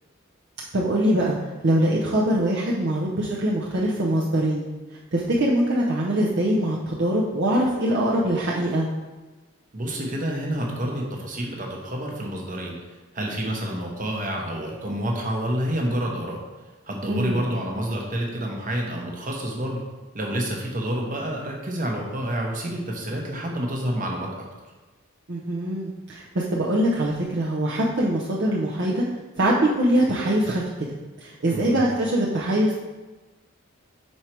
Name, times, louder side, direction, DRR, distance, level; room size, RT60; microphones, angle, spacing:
voice 1, 0.7-1.4 1.6-4.7 5.1-8.9 17.1-17.5 25.3-29.0 29.4-30.9 31.2-32.7, right 1 dB, 55° right, -5 dB, 0.7 m, -23 dB
voice 2, 9.7-12.8 13.1-16.4 16.9-19.8 20.1-24.4 31.5-31.8, right 1 dB, 40° right, -1 dB, 1.0 m, -28 dB
5.5 x 4.4 x 4.5 m, 1.2 s
head